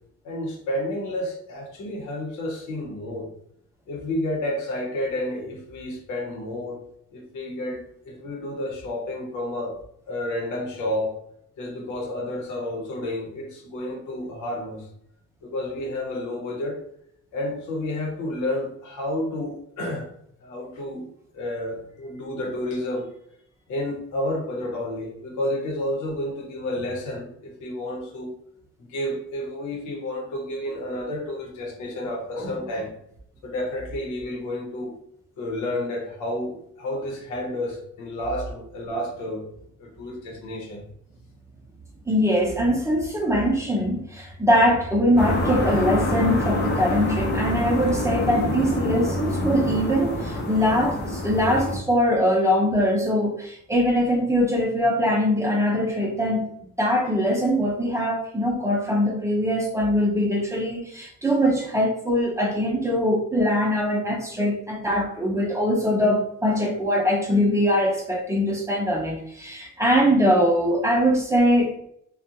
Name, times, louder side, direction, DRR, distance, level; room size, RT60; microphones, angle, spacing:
voice 1, 0.2-3.3 3.9-6.8 7.1-9.8 10.1-11.2 11.6-14.9 15.4-16.8 17.3-20.1 20.4-21.0 21.3-23.1 23.7-28.3 28.9-32.9 33.4-34.9 35.4-39.5 39.8-40.8, left 1 dB, 85° left, 0 dB, 0.9 m, -30 dB
voice 2, 42.1-56.4 56.8-71.7, equal, 10° right, -1 dB, 0.7 m, -22 dB
sound 1, 45.2-51.8, left 1 dB, 35° left, 0.7 m, -26 dB
2.4 x 2.3 x 2.7 m, 0.72 s
cardioid pair, 90°, 30 cm